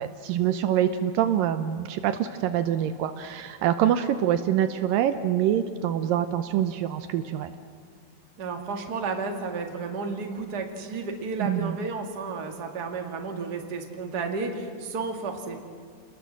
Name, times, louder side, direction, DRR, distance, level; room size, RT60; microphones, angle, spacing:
voice 1, 0.0-7.5 11.4-11.8, right 10 dB, 75° right, 9 dB, 2.4 m, -25 dB
voice 2, 8.4-15.6, right 4 dB, 35° right, 3 dB, 2.1 m, -32 dB
29.5 x 20.5 x 7.5 m, 2.1 s
omnidirectional pair, 4.1 m